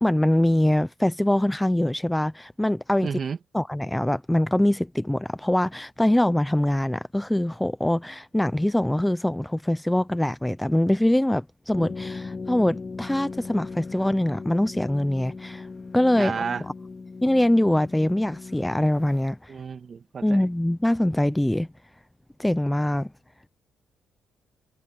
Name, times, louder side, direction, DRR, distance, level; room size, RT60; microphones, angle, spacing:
voice 1, 0.0-3.2 3.5-15.7 15.9-16.7 17.2-19.5 20.2-21.7 22.4-23.1, left 1 dB, 5° left, 0.7 m, -23 dB
voice 2, 3.0-3.4 16.2-16.6 19.5-20.4, right 6 dB, 45° right, 2.5 m, -31 dB
sound 1, 11.7-19.2, left 4 dB, 30° left, 2.5 m, -38 dB
cardioid pair, 90°, 0 cm